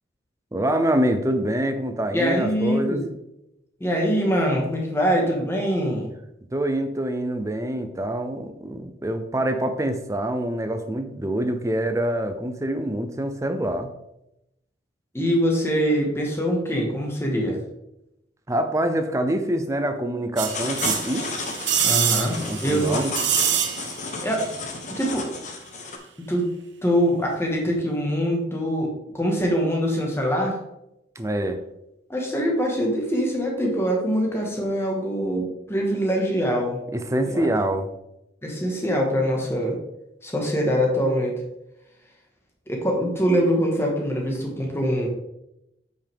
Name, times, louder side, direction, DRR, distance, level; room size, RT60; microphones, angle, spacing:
voice 1, 0.5-3.0 6.5-13.9 18.5-21.3 22.4-23.1 31.2-31.6 36.9-37.9, right 1 dB, 15° right, 8 dB, 0.6 m, -25 dB
voice 2, 2.1-3.1 3.8-6.1 15.1-17.6 21.8-22.9 24.2-24.5 24.9-25.3 26.2-26.5 26.8-30.6 32.1-36.8 37.3-37.5 38.4-39.8 40.2-41.4 42.7-45.1, equal, 15° left, 0 dB, 1.5 m, -23 dB
sound 1, 20.4-26.0, left 3 dB, 40° left, 1.0 m, -32 dB
sound 2, 20.4-24.2 24.4-24.5, right 9 dB, 75° right, 0.9 m, -25 dB
8.7 x 5.7 x 3.6 m, 0.86 s
head